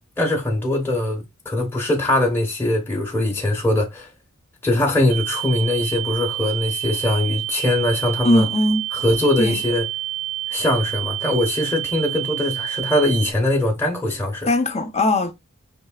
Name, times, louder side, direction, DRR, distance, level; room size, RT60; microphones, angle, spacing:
voice 1, 0.2-4.1 4.6-8.5 8.9-9.9 10.5-14.5, left 1 dB, 10° left, 1.0 m, -21 dB
sound 1, 5.1-13.3, right 15 dB, 85° right, 0.5 m, -28 dB
voice 2, 8.2-8.9 9.4-9.6 14.4-15.3, left 1 dB, 30° left, 0.7 m, -19 dB
5.3 x 3.2 x 2.3 m
head